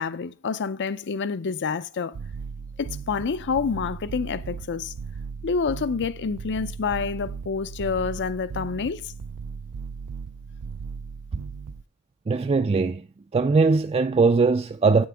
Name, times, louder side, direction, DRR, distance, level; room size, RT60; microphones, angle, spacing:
voice 1, 0.0-2.2 2.8-4.9 5.4-9.0, left 5 dB, 55° left, 0.5 m, -28 dB
sound 1, 2.1-11.8, right 5 dB, 90° right, 0.4 m, -37 dB
voice 2, 12.3-13.0 13.3-15.1, right 4 dB, 25° right, 0.3 m, -20 dB
9.6 x 8.4 x 3.4 m
head